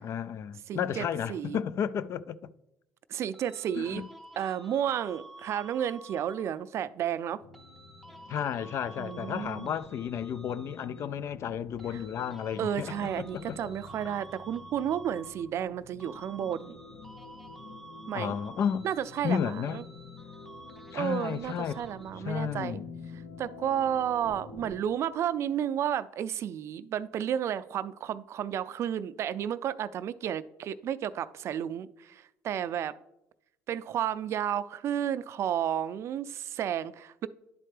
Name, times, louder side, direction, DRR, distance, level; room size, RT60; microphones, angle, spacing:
voice 1, 0.0-2.5 3.8-4.1 8.3-13.6 18.1-18.9 19.2-19.8 20.9-21.8 22.2-22.9, left 8 dB, 50° left, 0.3 m, -32 dB
voice 2, 0.7-1.6 3.1-4.0 4.4-7.4 9.0-9.7 11.9-12.0 12.6-16.8 18.1-18.3 18.8-19.8 20.9-22.8 23.4-32.9 33.7-37.3, right 9 dB, 55° right, 0.3 m, -32 dB
sound 1, 3.3-6.7 7.5-11.3 11.8-15.7 16.0-22.3, right 2 dB, ahead, 0.8 m, -51 dB
sound 2, 7.4-24.8, left 4 dB, 85° left, 1.0 m, -49 dB
11.0 x 4.3 x 3.3 m
supercardioid pair, 90°, 6 cm